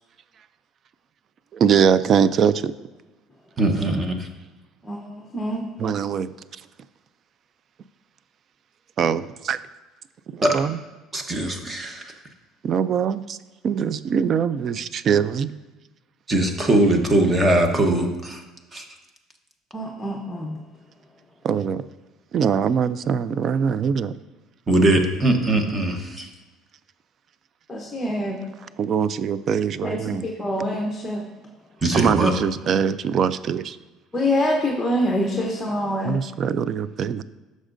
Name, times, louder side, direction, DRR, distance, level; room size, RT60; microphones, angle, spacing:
voice 1, 1.5-2.7 5.8-6.3 9.0-9.6 10.3-10.8 12.6-13.4 13.6-15.5 21.4-21.8 22.3-24.1 28.8-30.3 31.9-33.8 36.0-37.2, right 7 dB, 35° right, 15 dB, 0.3 m, -22 dB
voice 2, 3.6-4.2 10.4-10.6 11.1-12.0 16.3-18.4 18.7-18.8 24.7-26.3 31.8-32.3, right 1 dB, 20° right, 4 dB, 1.0 m, -20 dB
voice 3, 4.8-5.7 19.7-20.6 27.7-28.4 29.8-31.3 34.1-36.2, left 1 dB, 10° left, -1 dB, 0.9 m, -25 dB
15.0 x 6.3 x 2.6 m, 1.2 s
cardioid pair, 160°, 0 cm